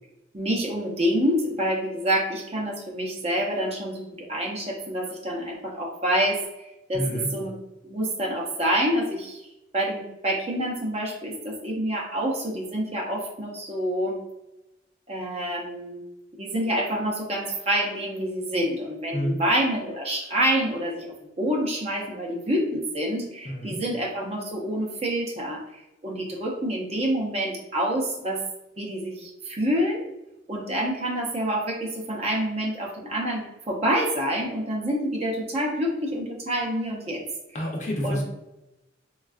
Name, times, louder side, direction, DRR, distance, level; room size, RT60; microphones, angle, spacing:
voice 1, 0.3-7.5 7.8-9.4 9.7-14.2 15.1-16.0 16.3-21.1 21.4-25.6 26.0-28.4 28.8-30.0 30.5-37.2 38.0-38.2, equal, 35° right, -1 dB, 0.6 m, -27 dB
voice 2, 6.9-7.3 19.1-19.4 23.4-23.8 37.5-38.2, equal, 40° left, 0 dB, 0.5 m, -28 dB
3.4 x 2.3 x 2.3 m, 0.94 s
head